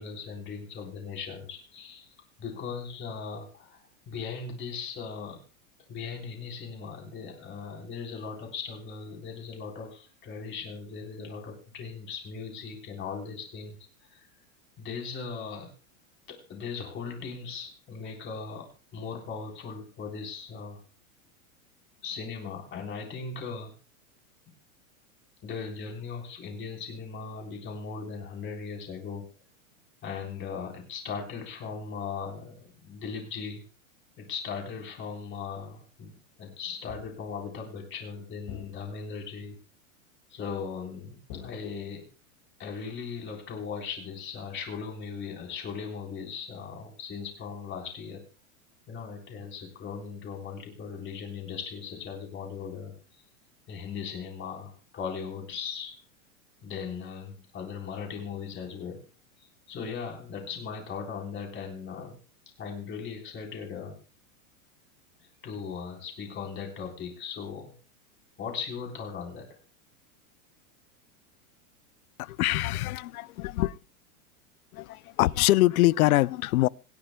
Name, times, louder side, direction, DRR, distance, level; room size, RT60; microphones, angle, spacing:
voice 1, 0.0-2.1 2.4-5.4 5.9-14.3 14.8-15.7 16.3-20.8 22.0-23.7 25.4-29.3 30.0-33.6 34.2-36.1 36.4-39.6 40.3-42.0 42.6-48.2 48.9-52.9 53.7-55.9 56.6-59.0 59.7-62.2 62.6-64.0 65.2-67.7 68.4-69.6, left 5 dB, 25° left, 3.8 m, -38 dB
sound 1, 36.9-37.4 38.5-39.2 41.3-42.2, left 8 dB, 55° left, 4.2 m, -46 dB
voice 2, 72.2-73.8 74.7-76.7, left 17 dB, 90° left, 0.6 m, -24 dB
26.0 x 10.5 x 2.2 m
supercardioid pair, 150°, 42 cm